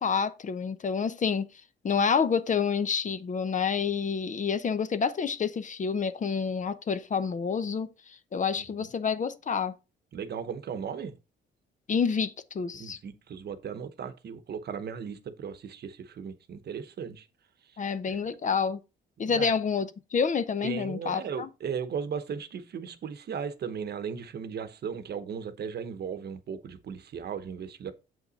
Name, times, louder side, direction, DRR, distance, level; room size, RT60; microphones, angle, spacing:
voice 1, 0.0-1.5 1.8-7.9 8.3-9.7 11.9-13.0 17.8-18.8 19.2-21.5, left 6 dB, 40° left, 0.7 m, -28 dB
voice 2, 10.1-11.2 12.7-17.3 17.6-17.8 18.1-18.2 19.2-19.6 20.6-27.9, right 7 dB, 55° right, 1.0 m, -37 dB
7.5 x 5.6 x 4.1 m
cardioid pair, 90°, 20 cm